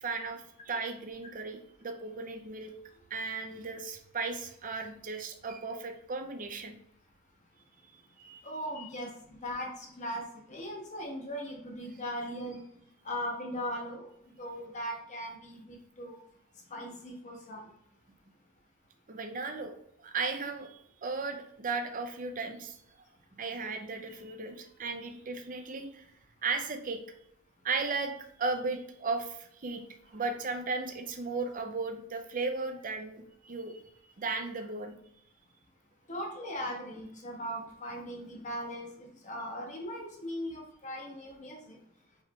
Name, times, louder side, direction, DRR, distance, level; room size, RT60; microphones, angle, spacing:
voice 1, 0.0-2.7 3.1-6.7 8.2-8.4 19.1-19.7 20.0-22.8 23.3-26.1 26.4-27.0 27.6-28.1 28.4-29.8 30.1-33.8 34.2-34.9, right 4 dB, 40° right, 5 dB, 0.6 m, -36 dB
voice 2, 8.4-12.6 13.0-16.2 16.7-17.7 36.1-41.8, equal, 35° left, 0 dB, 1.1 m, -39 dB
4.9 x 3.3 x 3.1 m, 0.73 s
head